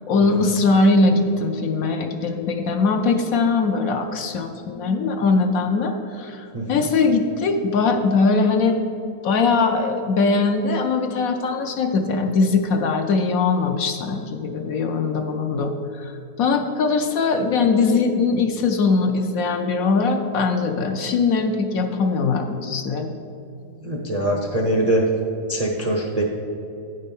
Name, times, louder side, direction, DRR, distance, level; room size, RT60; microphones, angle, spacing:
voice 1, 0.1-8.8 9.2-23.1, left 4 dB, 65° left, 5 dB, 1.0 m, -21 dB
voice 2, 6.5-6.9 23.8-25.0 25.5-26.2, right 1 dB, 40° right, 0 dB, 0.5 m, -23 dB
9.4 x 5.4 x 5.3 m, 2.7 s
omnidirectional pair, 1.8 m